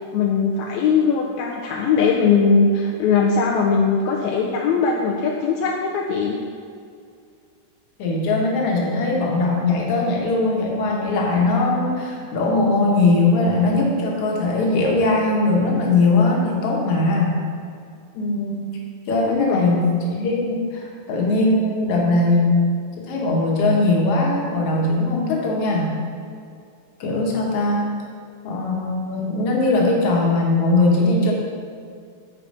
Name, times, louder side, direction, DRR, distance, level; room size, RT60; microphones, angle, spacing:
voice 1, 0.1-6.4 19.3-19.8, left 5 dB, 80° left, -2 dB, 1.7 m, -20 dB
voice 2, 8.0-17.4 18.1-18.7 19.1-22.6 23.0-26.0 27.0-27.9 28.4-31.3, left 2 dB, 60° left, -1 dB, 1.9 m, -20 dB
9.3 x 4.2 x 5.4 m, 2.3 s
omnidirectional pair, 3.6 m